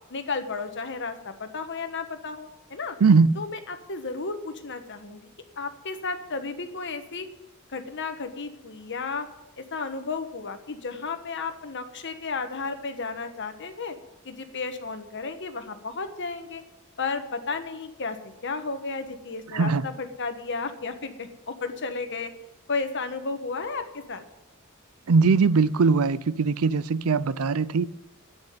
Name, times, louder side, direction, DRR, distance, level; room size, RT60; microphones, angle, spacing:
voice 1, 0.1-2.9 3.4-5.3 5.6-7.3 7.7-9.3 9.6-13.9 14.2-16.6 17.0-18.2 18.4-22.3 22.7-24.2, left 4 dB, 60° left, 1.4 m, -33 dB
voice 2, 3.0-3.3 19.5-19.9 25.1-27.8, right 4 dB, 80° right, 0.5 m, -20 dB
10.5 x 9.2 x 9.4 m
head